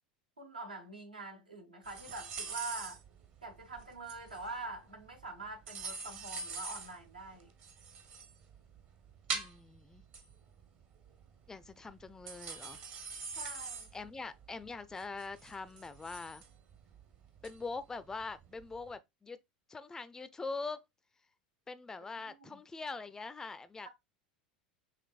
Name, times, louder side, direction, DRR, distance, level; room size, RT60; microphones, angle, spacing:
voice 1, 0.4-3.0 3.4-7.5 13.4-13.9 22.2-22.6, right 3 dB, 80° right, 1.0 m, -45 dB
sound 1, 1.8-18.9, right 5 dB, 40° right, 0.9 m, -45 dB
voice 2, 9.3-10.0 11.5-12.8 13.9-16.4 17.4-19.4 19.7-20.8 21.7-23.9, left 4 dB, 10° left, 0.4 m, -43 dB
5.8 x 3.1 x 2.3 m
figure-of-eight pair, 80°, 5 cm